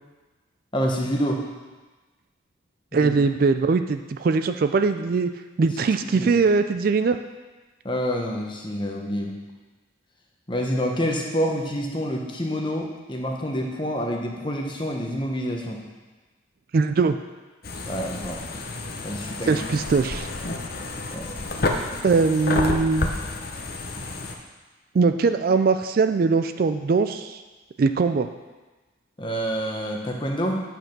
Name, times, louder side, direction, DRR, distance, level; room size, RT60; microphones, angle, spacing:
voice 1, 0.7-1.4 2.9-3.1 6.2-6.3 7.8-9.3 10.5-15.8 17.8-18.4 19.0-19.6 21.1-21.2 23.9-24.0 29.2-30.6, equal, 25° left, 0 dB, 1.1 m, -27 dB
voice 2, 2.9-5.3 5.6-7.2 16.7-17.2 19.5-20.3 22.0-23.1 24.9-27.4 27.8-28.3, right 4 dB, 50° right, 9 dB, 0.3 m, -21 dB
sound 1, 17.6-24.3, left 2 dB, 50° left, 0.8 m, -30 dB
9.0 x 5.3 x 6.0 m, 1.3 s
head